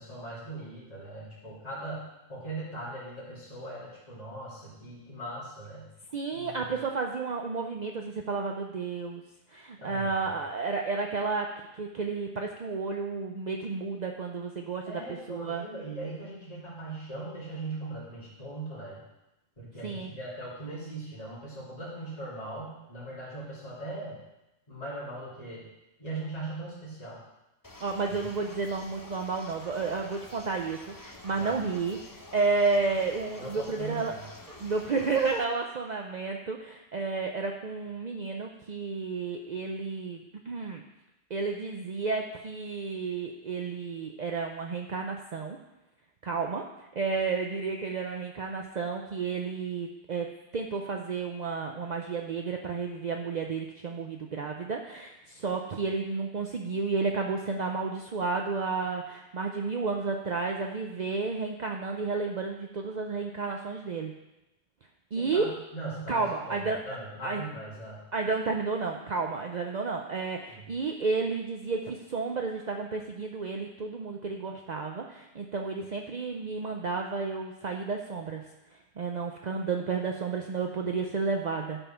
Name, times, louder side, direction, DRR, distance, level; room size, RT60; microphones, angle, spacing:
voice 1, 0.0-5.9 6.3-6.8 9.8-10.3 14.8-19.0 19.6-24.2 24.7-25.6 26.0-27.2 28.1-28.2 31.4-31.6 33.4-34.2 65.1-68.0 70.5-70.7, right 2 dB, 40° left, -9 dB, 3.0 m, -40 dB
voice 2, 6.1-9.2 9.5-15.0 15.3-15.7 19.8-20.1 27.8-34.1 34.5-40.8 41.3-45.6 46.2-46.7 46.9-64.1 65.1-65.5 66.1-66.8 67.2-67.4 68.1-78.4 78.7-81.8, right 4 dB, 50° right, 2 dB, 0.7 m, -31 dB
sound 1, 27.6-35.5, left 2 dB, 20° left, 0.8 m, -48 dB
11.0 x 5.5 x 5.7 m, 0.95 s
omnidirectional pair, 1.1 m